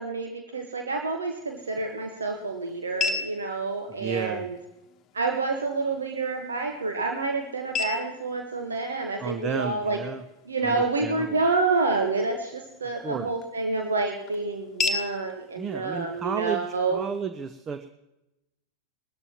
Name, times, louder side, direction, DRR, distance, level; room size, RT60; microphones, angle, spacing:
voice 1, 0.0-4.6 5.1-10.0 10.4-17.0, right 3 dB, 80° right, 3 dB, 1.2 m, -28 dB
sound 1, 1.2-17.2, left 4 dB, 35° left, 1.1 m, -38 dB
voice 2, 4.0-4.5 9.2-10.2 10.6-11.4 13.0-13.3 15.6-16.7 16.9-17.9, right 6 dB, 25° right, 10 dB, 0.7 m, -32 dB
20.5 x 13.5 x 2.9 m, 0.94 s
figure-of-eight pair, 90°, 0 cm